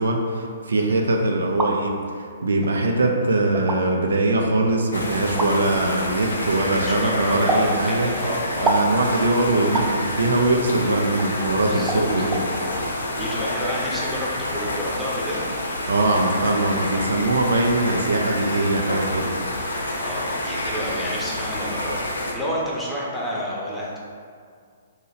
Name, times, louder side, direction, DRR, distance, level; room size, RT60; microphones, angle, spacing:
voice 1, 0.0-8.1 8.6-12.4 15.9-19.3, right 2 dB, 80° right, 2 dB, 0.4 m, -22 dB
sound 1, 1.3-1.7 2.6-2.7 3.5-3.8 5.4-5.5 7.5-7.7 8.7-8.9 9.7-9.9 11.2-11.3 11.9-12.0 12.3-12.4, right 2 dB, 15° right, 0.4 m, -24 dB
sound 2, 4.9-22.3, left 1 dB, 85° left, 0.7 m, -28 dB
voice 2, 6.7-8.7 11.7-12.0 13.0-15.4 20.0-24.0, equal, 5° left, -7 dB, 0.7 m, -30 dB
2.8 x 2.7 x 4.0 m, 2.1 s
hypercardioid pair, 130°, 0 cm